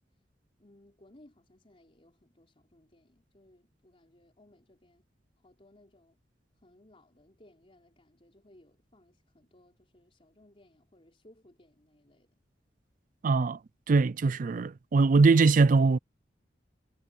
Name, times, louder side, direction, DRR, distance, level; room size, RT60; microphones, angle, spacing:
voice 1, 0.6-5.0 5.4-6.2 6.6-12.4, left 1 dB, 35° left, 4.1 m, -61 dB
voice 2, 13.2-13.6 13.9-16.0, right 4 dB, 50° right, 0.4 m, -22 dB
head